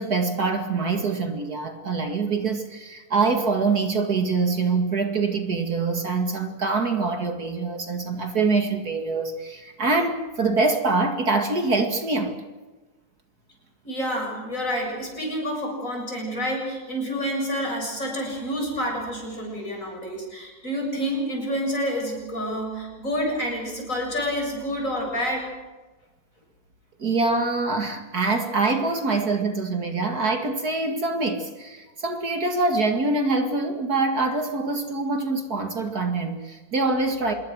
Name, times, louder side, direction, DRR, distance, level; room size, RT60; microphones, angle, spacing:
voice 1, 0.0-12.4 27.0-37.3, right 3 dB, 50° right, 5 dB, 2.5 m, -24 dB
voice 2, 13.8-25.6, equal, 40° left, 0 dB, 7.7 m, -28 dB
27.0 x 21.5 x 6.3 m, 1.2 s
omnidirectional pair, 2.1 m